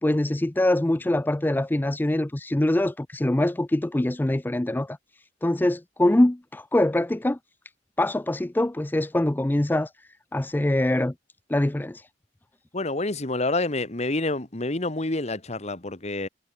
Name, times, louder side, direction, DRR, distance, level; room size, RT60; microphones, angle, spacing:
voice 1, 0.0-5.0 5.4-7.4 8.0-11.1 11.5-12.1, left 1 dB, 10° left, 0.4 m, -24 dB
voice 2, 12.7-16.3, left 2 dB, 40° left, 1.8 m, -28 dB
head